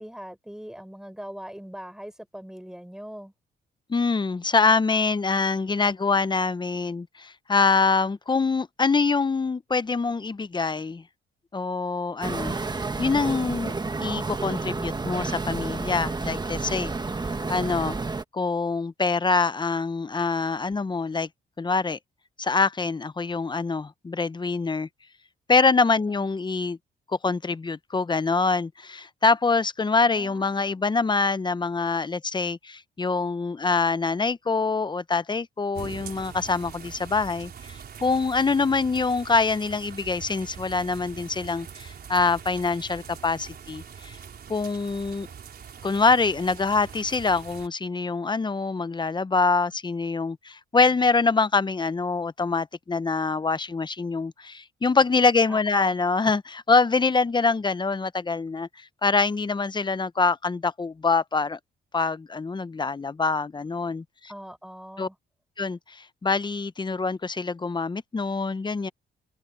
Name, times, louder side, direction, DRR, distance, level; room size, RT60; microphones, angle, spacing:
voice 1, 0.0-3.3 25.9-26.3 30.1-31.0 55.5-56.0 64.3-65.2, equal, 5° right, 5.7 m, -41 dB
voice 2, 3.9-11.0 11.5-12.6 13.0-13.7 14.0-16.9 17.5-18.0 18.3-21.3 21.6-22.0 22.4-24.9 25.5-26.8 27.2-44.2 44.5-45.3 45.8-61.6 61.9-64.3 65.0-65.1 65.6-68.9, left 4 dB, 25° left, 0.8 m, -25 dB
sound 1, 12.2-18.2, right 3 dB, 20° right, 1.3 m, -30 dB
sound 2, 35.7-47.7, right 7 dB, 55° right, 4.5 m, -43 dB
cardioid pair, 90°, 20 cm